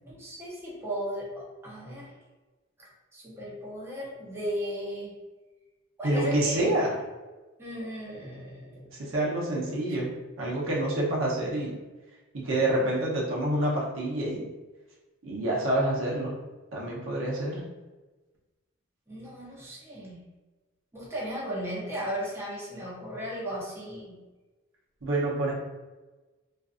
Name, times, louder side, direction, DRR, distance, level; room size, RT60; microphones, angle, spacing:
voice 1, 0.0-2.2 2.8-5.1 6.0-6.7 7.6-8.9 19.1-20.2 20.9-24.2, equal, 10° right, -6 dB, 0.6 m, -36 dB
voice 2, 6.0-6.9 8.9-11.7 12.3-14.5 15.2-16.4 16.7-17.7 25.0-25.5, right 1 dB, 70° right, -4 dB, 0.7 m, -27 dB
2.5 x 2.4 x 2.4 m, 1.2 s
head